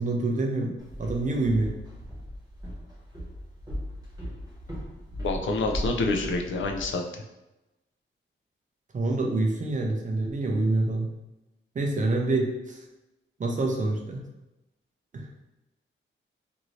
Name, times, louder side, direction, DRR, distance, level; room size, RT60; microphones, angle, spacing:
voice 1, 0.0-1.8 8.9-11.1 11.7-12.8 13.4-14.2 15.1-15.2, right 2 dB, 35° right, 1 dB, 0.5 m, -26 dB
Walk footsteps, 0.8-6.9, equal, 20° right, 1.0 m, -37 dB
voice 2, 5.2-7.2, left 2 dB, 65° left, 2 dB, 0.4 m, -27 dB
2.7 x 2.6 x 3.0 m, 0.99 s
wide cardioid pair, 155°, 21 cm